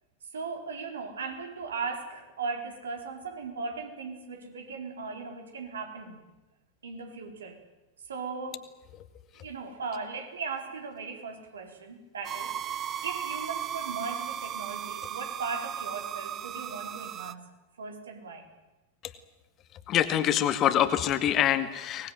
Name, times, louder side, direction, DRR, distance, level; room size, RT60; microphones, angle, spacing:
voice 1, 0.3-6.2 6.8-7.6 8.1-8.6 9.4-17.5 17.8-18.5, right 4 dB, 70° right, 4 dB, 4.3 m, -38 dB
sound 1, 12.2-17.3, right 9 dB, 30° right, 0.9 m, -36 dB
voice 2, 19.9-22.1, left 10 dB, 35° left, 10 dB, 2.0 m, -25 dB
24.5 x 19.5 x 9.4 m, 1.1 s
figure-of-eight pair, 90°, 0 cm